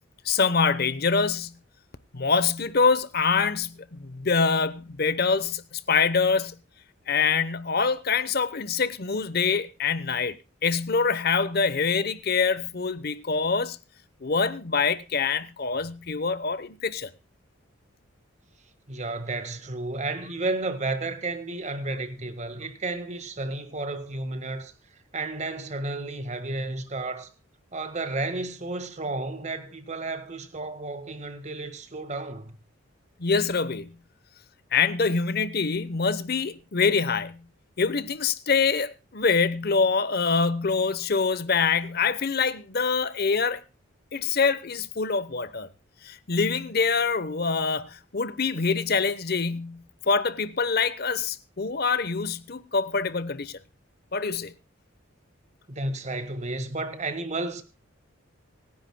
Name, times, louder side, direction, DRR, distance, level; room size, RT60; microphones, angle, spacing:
voice 1, 0.2-1.6 2.1-6.6 7.1-10.4 10.6-13.8 14.2-17.1 33.2-34.0 34.7-37.5 37.8-43.6 44.1-45.7 46.0-53.6 54.1-54.5, left 5 dB, 50° left, 0.9 m, -25 dB
voice 2, 18.9-24.7 25.1-27.3 27.7-32.5 55.7-57.6, right 2 dB, 35° right, 1.6 m, -32 dB
25.5 x 10.5 x 2.2 m
head